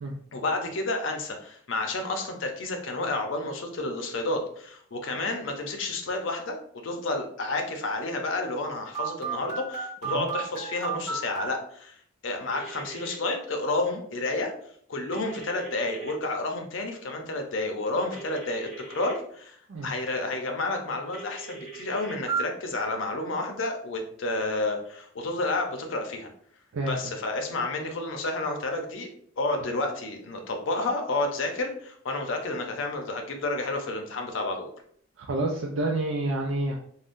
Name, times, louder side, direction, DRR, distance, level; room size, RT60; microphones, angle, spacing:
voice 1, 0.3-6.6 6.8-12.0 12.2-14.5 14.9-19.6 19.8-26.3 26.9-29.1 29.4-34.7, left 2 dB, 75° left, 4 dB, 0.6 m, -30 dB
Telephone, 8.9-11.5 12.5-13.1 15.1-16.1 18.1-19.1 21.1-22.4, right 6 dB, 40° right, 1.1 m, -35 dB
voice 2, 35.2-36.8, right 2 dB, 80° right, -1 dB, 0.4 m, -28 dB
2.5 x 2.1 x 3.5 m, 0.62 s
head